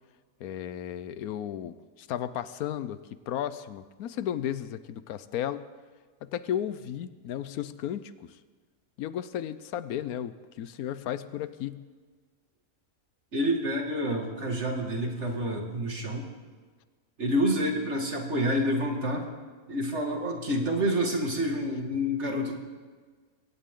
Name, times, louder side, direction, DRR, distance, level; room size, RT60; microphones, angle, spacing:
voice 1, 0.4-3.0 3.3-5.7 6.2-8.4 9.0-11.8, left 10 dB, 80° left, 14 dB, 1.1 m, -34 dB
voice 2, 13.3-16.3 17.2-19.3 19.7-22.6, equal, 50° right, 2 dB, 2.4 m, -28 dB
22.0 x 17.5 x 3.8 m, 1.5 s
omnidirectional pair, 1.5 m